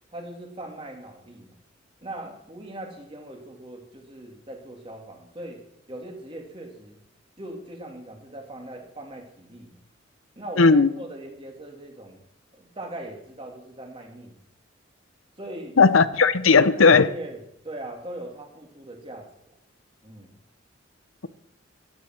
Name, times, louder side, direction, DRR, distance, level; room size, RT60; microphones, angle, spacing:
voice 1, 0.1-1.5 2.0-5.6 5.9-7.0 7.4-9.7 10.4-12.2 12.5-14.4 15.4-15.8 16.5-19.5 20.0-20.3, right 1 dB, 25° right, 2.8 m, -40 dB
voice 2, 10.6-10.9 15.8-17.1, left 4 dB, 90° left, 0.8 m, -16 dB
14.0 x 10.5 x 6.0 m
head